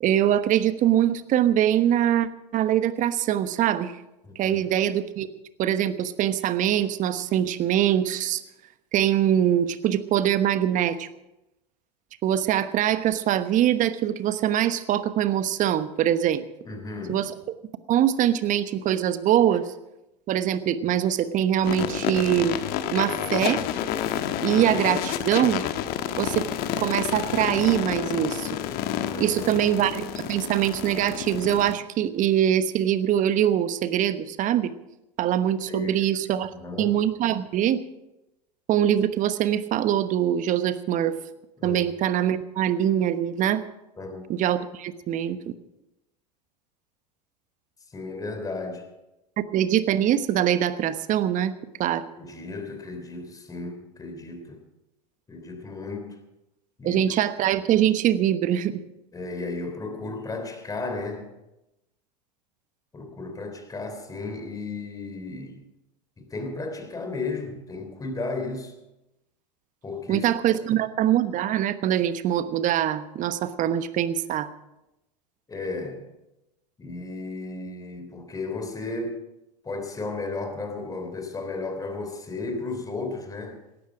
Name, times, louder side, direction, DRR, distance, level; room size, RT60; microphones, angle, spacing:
voice 1, 0.0-4.0 4.3-5.3 5.6-8.4 8.9-11.1 12.2-16.5 17.1-17.3 17.9-19.7 20.3-22.6 22.9-23.6 24.4-25.6 26.2-26.5 26.8-28.6 29.2-34.7 35.2-36.5 36.8-37.8 38.7-41.2 41.6-43.6 44.3-45.5 49.5-51.5 51.8-52.0 56.8-58.8 70.1-74.5, right 11 dB, 40° right, 12 dB, 1.1 m, -23 dB
voice 2, 4.2-4.7 16.7-17.2 29.1-29.6 35.7-36.1 36.5-36.9 41.6-41.8 44.0-44.2 47.9-48.9 52.2-54.6 55.3-56.2 56.8-57.0 59.1-61.3 62.9-65.6 66.2-68.7 69.8-70.3 70.7-70.8 75.5-76.1 76.8-79.2 79.6-83.6, left 3 dB, 15° left, 6 dB, 3.3 m, -34 dB
sound 1, 21.6-31.7, left 10 dB, 45° left, 1.3 m, -29 dB
17.5 x 13.5 x 5.0 m, 0.93 s
hypercardioid pair, 90°, 21 cm